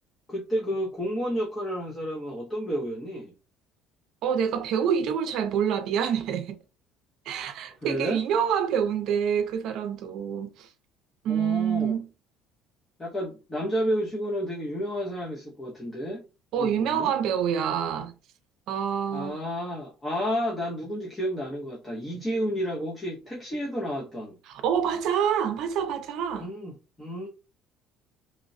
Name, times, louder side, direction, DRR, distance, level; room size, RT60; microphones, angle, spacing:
voice 1, 0.3-3.3 7.8-8.2 11.3-12.0 13.0-16.2 16.6-17.1 19.1-24.4 26.3-27.3, equal, 15° left, 0.7 m, -31 dB
voice 2, 4.2-6.6 7.3-10.7 11.2-12.1 16.5-18.2 18.7-19.4 24.5-26.5, right 8 dB, 55° right, 0.6 m, -27 dB
3.1 x 2.9 x 2.6 m
cardioid pair, 165°, 0 cm